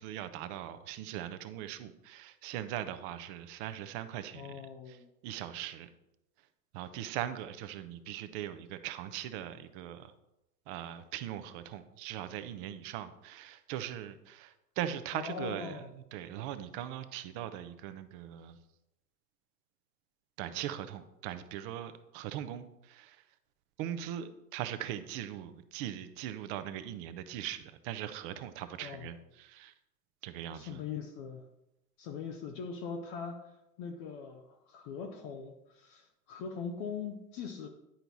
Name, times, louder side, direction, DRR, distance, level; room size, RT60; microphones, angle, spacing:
voice 1, 0.0-5.0 5.2-5.9 6.7-10.1 10.7-18.6 20.4-23.2 23.8-29.7 30.2-30.8, right 11 dB, 35° right, 11 dB, 0.6 m, -40 dB
voice 2, 4.3-5.1 15.1-15.9 28.8-29.1 30.5-31.4 32.0-37.7, left 6 dB, 20° left, 5 dB, 0.4 m, -41 dB
10.0 x 4.5 x 4.0 m, 0.88 s
hypercardioid pair, 110°, 48 cm